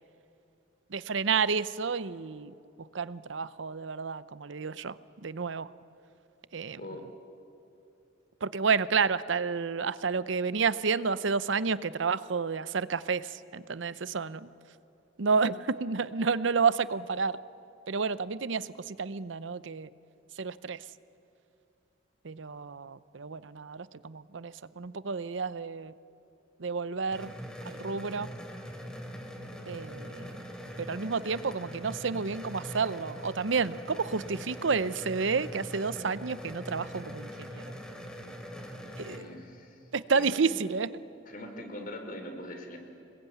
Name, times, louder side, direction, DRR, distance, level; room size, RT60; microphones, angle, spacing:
voice 1, 0.9-2.5 2.9-5.0 5.2-5.7 6.5-6.8 8.4-14.5 15.2-17.4 17.9-19.9 20.4-20.8 22.2-25.9 26.6-27.3 27.6-28.3 29.7-30.3 30.8-37.6 39.0-39.3 39.9-40.9, right 5 dB, 70° right, 16 dB, 0.7 m, -30 dB
sound 1, 27.1-39.2, equal, 5° left, 3.1 m, -42 dB
voice 2, 39.0-40.6 41.3-42.8, left 1 dB, 45° left, 4 dB, 3.8 m, -42 dB
26.0 x 21.5 x 9.3 m, 2.7 s
head